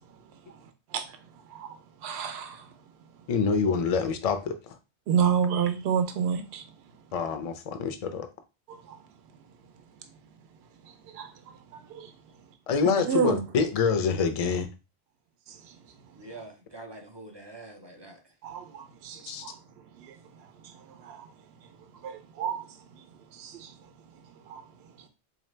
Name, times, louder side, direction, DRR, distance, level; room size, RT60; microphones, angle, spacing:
voice 1, 1.5-2.7 5.1-6.6 8.7-9.0 11.1-11.3 11.7-12.1 13.1-13.4 15.5-15.8 18.4-19.6 20.0-21.3 22.0-22.8 23.3-23.7 24.5-24.6, right 7 dB, 70° right, 0.8 m, -30 dB
voice 2, 3.3-4.7 7.1-8.3 12.7-14.7 19.3-19.5, left 5 dB, 50° left, 0.4 m, -26 dB
voice 3, 16.2-18.4, right 2 dB, 40° right, 0.4 m, -45 dB
3.9 x 2.7 x 3.2 m
omnidirectional pair, 1.2 m